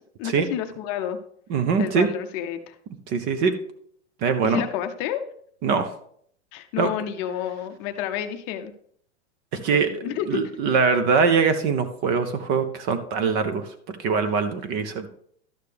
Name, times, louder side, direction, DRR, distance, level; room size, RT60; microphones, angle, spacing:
voice 1, 0.2-1.2 1.8-2.7 4.4-5.2 6.5-8.7 9.7-10.4, left 10 dB, 35° left, 7 dB, 0.7 m, -30 dB
voice 2, 1.5-2.1 3.1-3.5 4.2-4.6 5.6-5.9 6.8-6.9 9.6-15.1, right 5 dB, 30° right, 10 dB, 0.6 m, -23 dB
12.0 x 6.5 x 3.4 m, 0.64 s
supercardioid pair, 145°, 35 cm